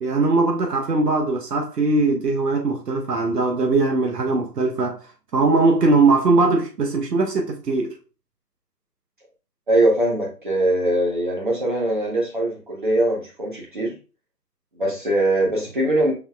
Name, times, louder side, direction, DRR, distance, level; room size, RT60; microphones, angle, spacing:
voice 1, 0.0-5.1 5.3-7.9, right 3 dB, 70° right, 1.0 m, -20 dB
voice 2, 9.7-14.0 14.8-16.1, right 1 dB, 30° right, 0.8 m, -21 dB
5.8 x 3.5 x 2.3 m
figure-of-eight pair, 155°, 49 cm